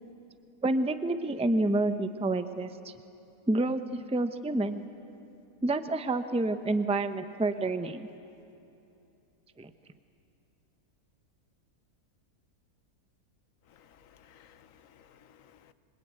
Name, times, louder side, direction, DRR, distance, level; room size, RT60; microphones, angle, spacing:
voice 1, 0.6-2.9 3.5-4.8 5.6-8.1 9.6-9.7, right 2 dB, 5° right, 9 dB, 0.6 m, -28 dB
voice 2, 13.7-15.7, left 9 dB, 65° left, 12 dB, 1.3 m, -59 dB
26.5 x 24.0 x 9.0 m, 2.8 s
omnidirectional pair, 1.5 m